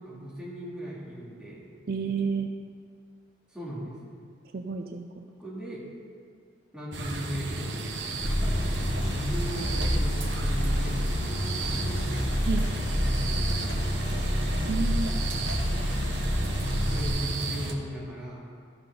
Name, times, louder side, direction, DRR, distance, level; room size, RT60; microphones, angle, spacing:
voice 1, 0.0-1.7 3.5-4.0 5.4-5.8 6.7-7.9 8.3-12.1 13.0-14.3 16.9-18.4, equal, 5° right, -7 dB, 2.2 m, -38 dB
voice 2, 1.9-2.5 4.5-5.3 12.5-12.7 14.7-15.1, right 5 dB, 55° right, 4 dB, 0.4 m, -30 dB
sound 1, 6.9-17.7, right 2 dB, 80° right, 1.0 m, -34 dB
sound 2, 8.2-17.1, equal, 80° left, 1.6 m, -28 dB
13.0 x 6.0 x 5.3 m, 2.1 s
head